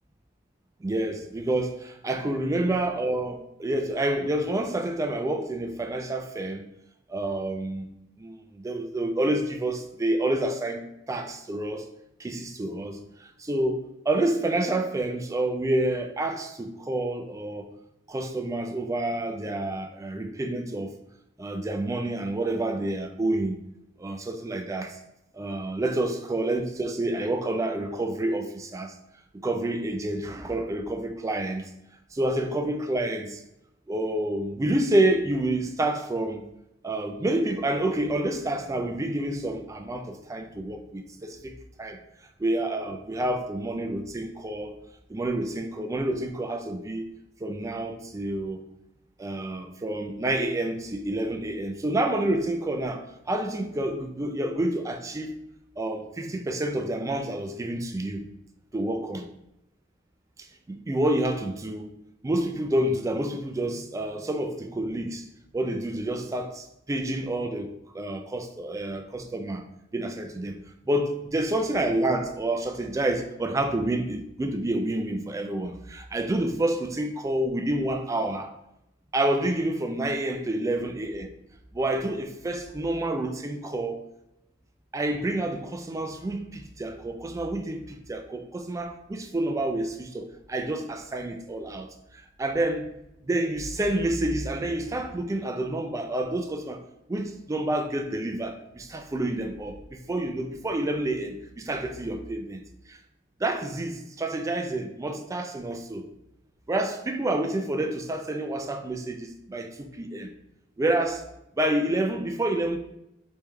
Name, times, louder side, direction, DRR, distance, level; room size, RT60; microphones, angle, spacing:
voice 1, 0.8-6.7 7.1-7.9 8.2-11.9 12.2-13.0 13.4-17.7 18.1-20.9 21.4-23.6 24.0-25.0 25.3-28.9 29.4-31.7 32.1-33.4 33.9-36.4 36.8-41.5 41.8-42.0 42.4-44.8 45.1-47.1 47.4-48.6 49.2-55.4 55.8-58.3 58.7-59.3 60.7-61.9 62.2-65.3 65.5-69.6 69.9-70.6 70.8-78.5 79.1-81.3 81.7-84.0 84.9-92.9 93.2-96.8 97.1-102.6 102.9-103.0 103.4-106.1 106.7-110.3 110.8-111.2 111.6-112.8, right 1 dB, 15° right, 0.3 m, -28 dB
3.5 x 3.1 x 3.2 m
head